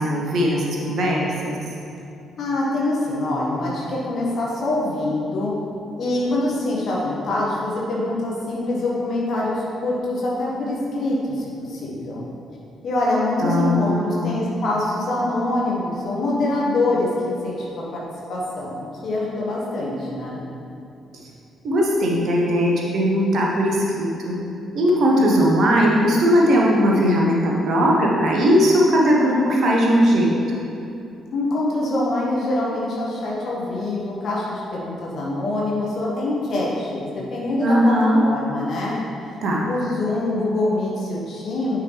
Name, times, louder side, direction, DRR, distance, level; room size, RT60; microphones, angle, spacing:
voice 1, 0.0-1.6 13.4-14.3 21.6-24.4 24.7-30.3 37.6-38.2 39.4-39.7, equal, 50° right, -2 dB, 0.9 m, -19 dB
voice 2, 2.4-5.5 6.0-12.2 12.8-18.0 18.3-20.5 31.3-37.9 38.2-39.0 39.3-39.4 39.7-41.8, left 2 dB, 50° left, -5 dB, 1.1 m, -24 dB
9.5 x 3.7 x 3.2 m, 2.7 s
figure-of-eight pair, 40°, 0 cm